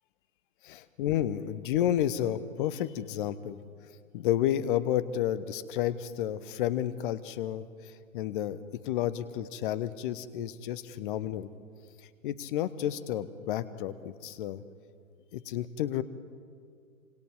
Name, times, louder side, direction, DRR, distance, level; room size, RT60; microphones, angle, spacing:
voice 1, 1.0-3.6 4.1-7.7 8.1-11.5 12.2-14.6 15.3-16.0, left 11 dB, 40° left, 15 dB, 1.1 m, -31 dB
27.0 x 25.5 x 4.9 m, 2.2 s
figure-of-eight pair, 110°, 41 cm